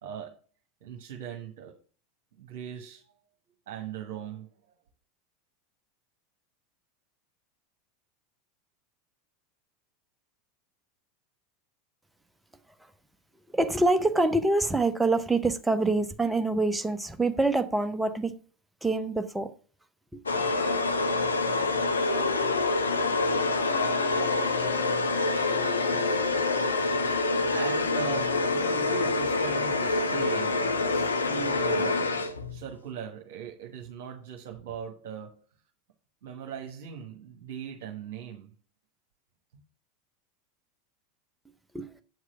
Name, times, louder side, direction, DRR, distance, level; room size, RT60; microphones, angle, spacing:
voice 1, 0.0-0.4 0.8-1.7 2.4-3.0 3.7-4.5 26.4-31.9 32.5-35.3 36.2-38.5, right 8 dB, 55° right, 1.3 m, -40 dB
voice 2, 13.5-18.3 18.8-19.5 20.1-20.2 41.7-41.9, right 2 dB, 5° right, 0.9 m, -25 dB
sound 1, 16.4-16.5 16.9-17.0 17.3-17.4 20.3-31.8, left 10 dB, 45° left, 2.5 m, -40 dB
sound 2, 20.3-32.6, left 3 dB, 75° left, 0.7 m, -26 dB
8.1 x 4.8 x 7.0 m
figure-of-eight pair, 80°, 0 cm